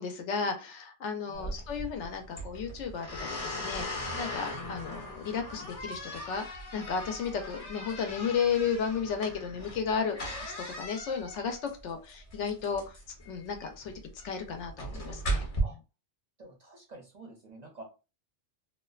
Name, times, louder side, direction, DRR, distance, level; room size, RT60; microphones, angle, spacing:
voice 1, 0.0-12.9 13.3-13.9 14.2-15.5, left 6 dB, 85° left, 6 dB, 0.9 m, -34 dB
sound 1, 1.3-15.6, equal, 40° left, 0.6 m, -39 dB
voice 2, 16.4-17.8, right 2 dB, 50° right, 1 dB, 0.5 m, -48 dB
2.5 x 2.1 x 2.3 m, 0.30 s
omnidirectional pair, 1.2 m